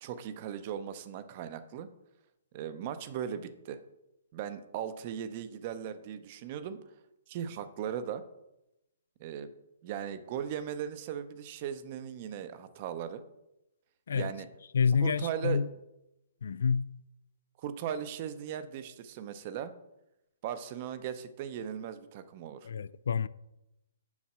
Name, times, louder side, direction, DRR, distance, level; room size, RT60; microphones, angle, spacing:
voice 1, 0.0-1.9 2.5-3.8 4.3-6.8 7.3-8.2 9.2-9.5 9.8-13.2 14.1-14.5 15.0-15.6 17.6-19.7 20.4-22.7, right 9 dB, 30° right, 0.6 m, -38 dB
voice 2, 14.7-15.7 16.4-17.0 22.6-23.3, left 6 dB, 75° left, 0.3 m, -28 dB
7.2 x 5.5 x 6.1 m
hypercardioid pair, 165°, 0 cm